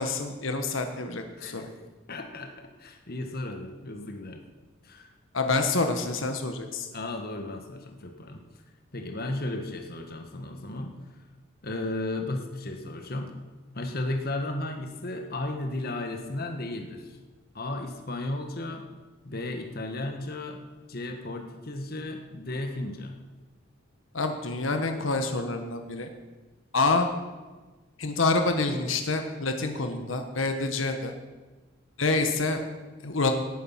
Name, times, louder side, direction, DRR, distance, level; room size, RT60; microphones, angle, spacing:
voice 1, 0.0-1.7 5.3-6.9 24.1-26.1 26.7-27.1 28.0-31.1 32.0-32.6 33.0-33.3, left 3 dB, 80° left, 6 dB, 1.3 m, -27 dB
voice 2, 1.4-1.7 2.1-4.4 4.8-5.1 6.9-8.4 8.9-10.9 11.6-13.3 13.7-17.2 17.5-18.8 19.2-20.6 20.9-23.1, left 2 dB, 50° left, 4 dB, 1.5 m, -34 dB
18.0 x 9.5 x 5.8 m, 1.3 s
head